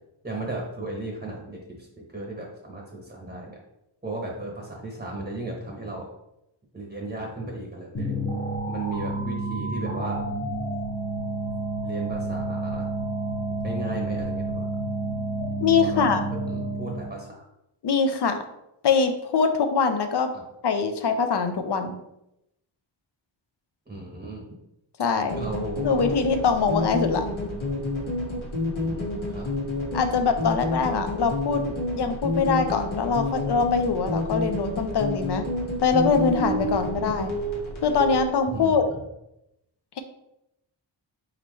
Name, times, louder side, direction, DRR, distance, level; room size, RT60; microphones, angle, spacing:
voice 1, 0.2-3.6 4.0-6.1 6.7-8.3 8.7-10.2 11.8-12.9 13.6-14.7 15.8-17.4 20.3-20.4 23.9-24.4 25.3-26.1 28.8-29.5 30.4-30.6 36.6-36.8 38.5-38.8, right 2 dB, 20° right, -1 dB, 0.9 m, -35 dB
sound 1, 7.9-17.2, right 2 dB, 25° left, 1.0 m, -30 dB
voice 2, 15.6-16.2 17.8-18.4 18.8-20.3 20.6-22.0 25.0-25.4 25.8-27.2 29.9-31.6 31.9-35.5 35.8-37.3 37.8-38.8, left 5 dB, 60° left, 8 dB, 0.6 m, -23 dB
sound 2, 25.3-38.2, left 2 dB, 85° left, 1.4 m, -29 dB
4.3 x 3.9 x 3.1 m, 0.85 s
wide cardioid pair, 110°, 47 cm